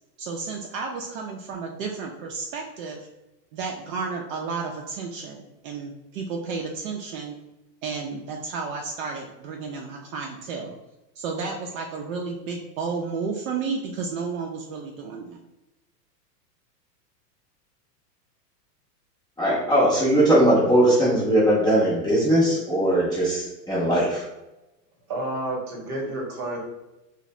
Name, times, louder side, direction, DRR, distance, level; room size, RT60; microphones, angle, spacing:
voice 1, 0.2-3.1 3.5-7.4 7.8-10.8 11.2-15.4, right 4 dB, 55° right, 1 dB, 0.5 m, -32 dB
voice 2, 19.4-24.2, right 1 dB, 10° left, -9 dB, 0.5 m, -20 dB
voice 3, 25.1-26.6, right 1 dB, 35° right, -1 dB, 0.9 m, -30 dB
2.6 x 2.0 x 3.0 m, 0.99 s
hypercardioid pair, 120°, 49 cm